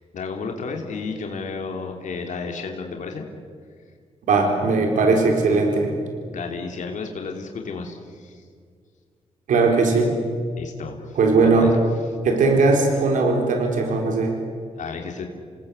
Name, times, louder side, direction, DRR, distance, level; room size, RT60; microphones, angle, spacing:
voice 1, 0.1-3.2 6.3-8.4 10.6-11.7 14.8-15.3, left 4 dB, 75° left, 3 dB, 3.0 m, -32 dB
voice 2, 4.3-5.9 9.5-10.1 11.2-11.7 12.2-14.3, right 3 dB, 85° right, 2 dB, 4.1 m, -19 dB
28.5 x 19.0 x 8.2 m, 2.1 s
cardioid pair, 70°, 13 cm